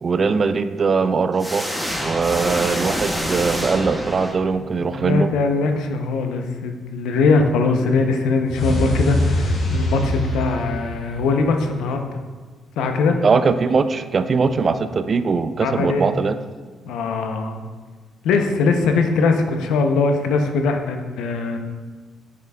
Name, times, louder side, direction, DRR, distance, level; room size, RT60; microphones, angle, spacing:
voice 1, 0.0-1.6 2.0-5.3 13.2-16.4, right 4 dB, 40° right, 11 dB, 0.3 m, -20 dB
sound 1, 1.4-4.8, equal, 5° left, 0.9 m, -27 dB
voice 2, 4.6-12.2 12.8-13.2 15.6-16.1 16.8-17.6 18.2-21.6, left 4 dB, 85° left, 5 dB, 0.6 m, -21 dB
sound 2, 8.5-11.6, equal, 65° left, 1.8 m, -23 dB
7.4 x 5.8 x 2.3 m, 1.4 s
cardioid pair, 90°, 0 cm